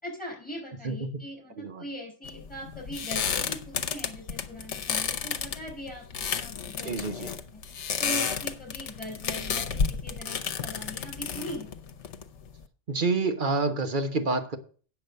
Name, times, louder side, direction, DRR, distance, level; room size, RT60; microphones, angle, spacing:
voice 1, 0.0-7.6 8.0-9.7 10.0-11.7, equal, 5° left, 0 dB, 5.4 m, -40 dB
sound 1, 2.3-12.6, left 6 dB, 70° left, 1.2 m, -32 dB
voice 2, 6.8-7.3 12.9-14.6, right 3 dB, 45° right, 6 dB, 1.4 m, -28 dB
8.8 x 7.0 x 6.5 m, 0.40 s
omnidirectional pair, 1.3 m